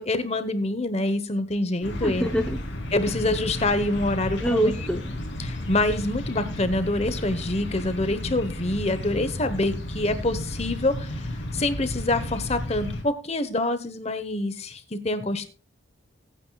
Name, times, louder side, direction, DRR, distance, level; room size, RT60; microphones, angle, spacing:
voice 1, 0.0-2.3 2.9-4.7 5.4-15.5, left 2 dB, 30° left, 11 dB, 1.0 m, -26 dB
sound 1, 1.8-13.0, left 1 dB, 60° left, 3.2 m, -33 dB
voice 2, 2.0-2.6 4.4-5.0, equal, 5° left, 3 dB, 0.8 m, -25 dB
20.5 x 9.2 x 2.3 m, 0.36 s
head